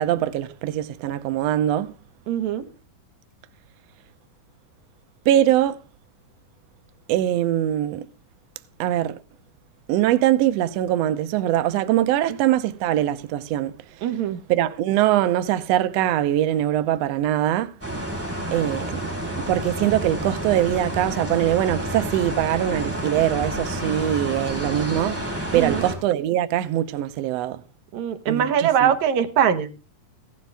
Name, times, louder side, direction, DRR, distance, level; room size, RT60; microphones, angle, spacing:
voice 1, 0.0-1.9 5.2-5.8 7.1-8.1 8.8-9.2 9.9-14.1 14.5-17.7 18.5-19.0 19.5-25.2 25.5-27.6 28.3-28.9, right 12 dB, 80° right, 1.4 m, -22 dB
voice 2, 2.3-2.7 14.0-14.4 25.5-25.9 27.9-29.7, right 9 dB, 65° right, 2.3 m, -22 dB
sound 1, 17.8-26.0, right 1 dB, 5° right, 3.6 m, -29 dB
16.0 x 12.0 x 3.4 m
omnidirectional pair, 3.8 m